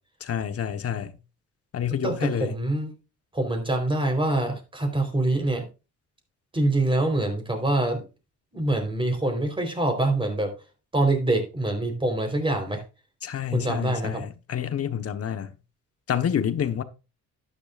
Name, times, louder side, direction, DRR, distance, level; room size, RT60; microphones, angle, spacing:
voice 1, 0.2-1.2 1.7-2.6 13.2-15.5 16.1-16.8, left 9 dB, 50° left, 1.3 m, -28 dB
voice 2, 2.0-2.9 3.3-5.7 6.5-8.0 8.5-10.5 10.9-12.8 13.5-14.3, right 2 dB, 15° right, 4.2 m, -25 dB
12.0 x 10.0 x 2.5 m
cardioid pair, 90°, 30 cm